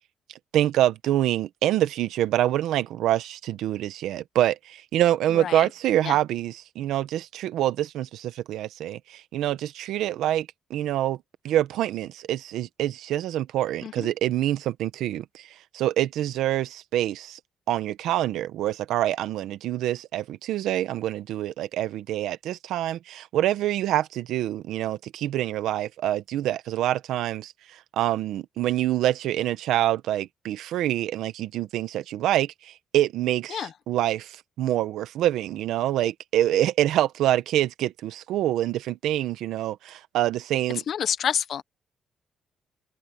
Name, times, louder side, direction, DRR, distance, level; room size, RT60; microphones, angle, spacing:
voice 1, 0.5-11.2 11.4-15.5 15.7-17.4 17.7-27.5 28.0-40.8, right 13 dB, 85° right, 1.2 m, -26 dB
voice 2, 5.3-5.7 6.0-6.2 13.8-14.1 33.5-33.7 40.7-41.6, left 9 dB, 65° left, 1.2 m, -29 dB
open air
cardioid pair, 90°, 0 cm